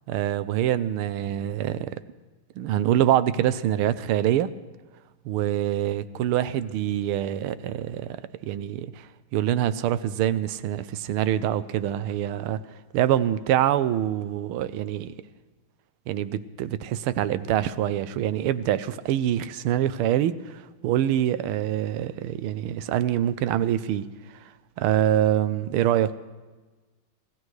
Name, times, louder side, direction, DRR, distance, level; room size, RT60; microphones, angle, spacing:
voice 1, 0.1-1.9 2.6-4.5 5.2-8.2 8.4-12.6 12.9-15.1 16.1-24.1 24.8-26.1, right 11 dB, 85° right, 14 dB, 1.5 m, -25 dB
26.0 x 16.0 x 3.2 m, 1.3 s
omnidirectional pair, 2.4 m